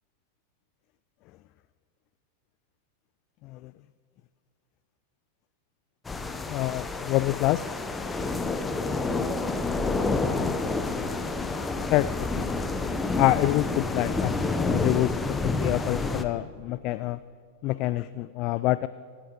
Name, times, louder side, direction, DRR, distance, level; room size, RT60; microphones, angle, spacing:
sound 1, 6.1-16.2, left 3 dB, 10° left, 0.9 m, -29 dB
voice 1, 6.5-7.6 11.9-12.7 13.2-17.2 17.6-18.9, left 16 dB, 40° left, 16 dB, 0.3 m, -27 dB
25.0 x 8.9 x 5.4 m, 2.1 s
figure-of-eight pair, 90°, 0 cm